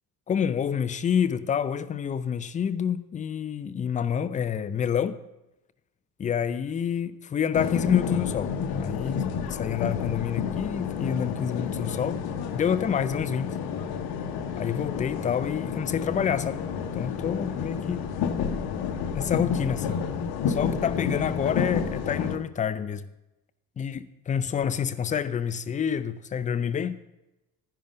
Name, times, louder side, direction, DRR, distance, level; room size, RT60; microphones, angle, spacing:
voice 1, 0.3-5.2 6.2-8.5 8.8-9.2 9.5-12.2 12.5-13.5 14.6-16.7 16.9-18.1 19.2-20.0 20.5-23.1 23.8-27.0, left 8 dB, 15° left, 13 dB, 0.4 m, -28 dB
sound 1, 7.5-22.4, left 7 dB, 50° left, 1.0 m, -30 dB
11.0 x 10.5 x 3.9 m, 0.94 s
figure-of-eight pair, 50°, 49 cm